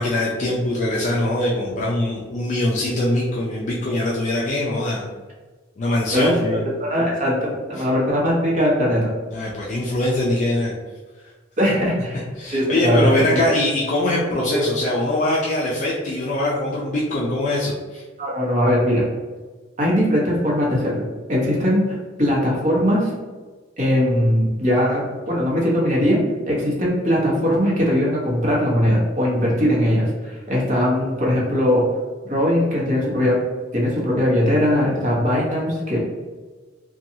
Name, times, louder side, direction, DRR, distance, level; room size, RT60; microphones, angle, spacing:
voice 1, 0.0-5.1 5.8-6.6 7.8-7.9 9.3-10.7 12.4-18.0, left 1 dB, 40° left, -4 dB, 0.3 m, -22 dB
voice 2, 6.9-9.1 11.6-13.4 14.5-14.6 18.2-19.0 19.8-23.1 23.8-26.2 26.5-31.9 32.2-33.4 33.7-36.0, equal, 40° right, -4 dB, 0.9 m, -20 dB
2.7 x 2.2 x 2.6 m, 1.3 s
head